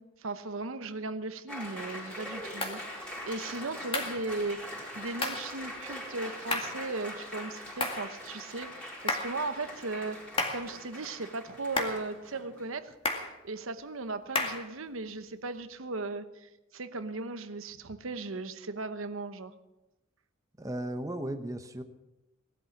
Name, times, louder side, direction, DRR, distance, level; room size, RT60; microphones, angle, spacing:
voice 1, 0.0-4.6 5.0-10.2 10.5-12.9 13.4-19.5, right 3 dB, 80° right, 10 dB, 0.9 m, -37 dB
Applause, 1.5-12.8, equal, 5° left, 4.5 m, -43 dB
sound 1, 2.6-2.8 3.9-4.2 5.2-5.5 6.5-6.8 7.8-8.1 9.1-9.4 10.4-10.7 11.8-12.1 13.0-13.3 14.3-14.7, left 2 dB, 25° left, 2.1 m, -31 dB
voice 2, 20.6-21.8, right 1 dB, 15° right, 7 dB, 1.0 m, -35 dB
18.5 x 12.5 x 6.0 m, 1.0 s
head